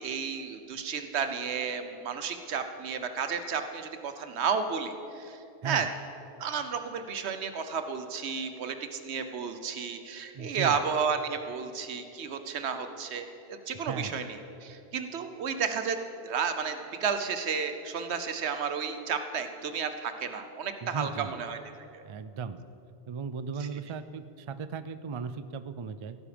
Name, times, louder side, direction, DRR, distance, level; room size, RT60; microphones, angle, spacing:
voice 1, 0.0-5.4 5.6-5.9 6.4-16.0 16.2-21.6 21.9-22.0 23.6-23.7, right 6 dB, 90° right, 8 dB, 1.1 m, -32 dB
voice 2, 10.3-10.8 13.8-14.2 20.8-21.4 22.0-22.6 23.1-26.2, right 5 dB, 50° right, 13 dB, 0.3 m, -37 dB
16.0 x 10.0 x 5.1 m, 2.8 s
omnidirectional pair, 1.1 m